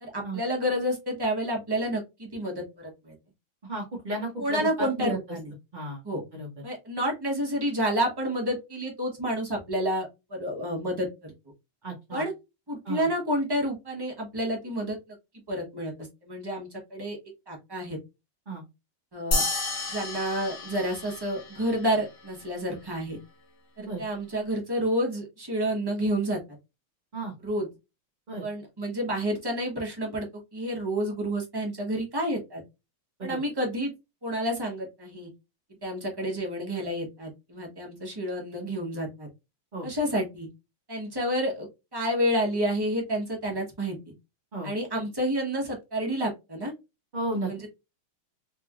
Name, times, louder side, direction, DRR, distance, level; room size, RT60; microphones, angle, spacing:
voice 1, 0.0-3.1 4.4-5.5 6.0-6.2 6.6-11.3 12.1-12.3 12.7-15.0 15.5-17.2 17.5-18.0 19.1-19.4 19.9-23.2 23.8-26.4 27.4-27.7 28.4-32.6 33.2-33.9 34.2-35.3 35.8-39.3 39.8-40.5 40.9-44.1 44.6-46.7 47.5-47.7, equal, 20° right, -1 dB, 0.7 m, -29 dB
voice 2, 3.6-5.2 5.7-6.0 6.3-6.5 11.8-12.2 12.8-13.1 18.5-18.6 23.8-24.0 27.1-27.3 28.3-28.4 33.2-33.4 39.7-39.9 44.5-44.7 47.1-47.5, right 2 dB, 80° right, 0 dB, 0.4 m, -33 dB
sound 1, 19.3-22.1, left 2 dB, 90° left, 0.5 m, -31 dB
3.4 x 3.1 x 2.3 m, 0.24 s
omnidirectional pair, 2.2 m